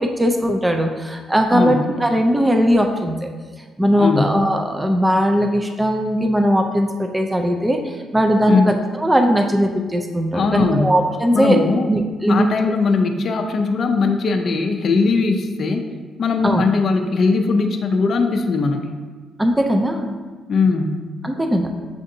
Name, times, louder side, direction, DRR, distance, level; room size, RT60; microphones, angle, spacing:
voice 1, 0.0-3.2 3.8-11.6 11.9-12.5 16.4-16.6 19.4-20.2 21.2-21.7, equal, 10° right, 4 dB, 0.4 m, -19 dB
voice 2, 1.5-1.9 4.0-4.3 8.5-8.7 10.3-10.9 11.3-11.9 12.3-15.9 16.2-19.0 20.5-21.0, left 4 dB, 55° left, 4 dB, 0.4 m, -19 dB
7.5 x 2.6 x 2.6 m, 1.4 s
cardioid pair, 90°, 0 cm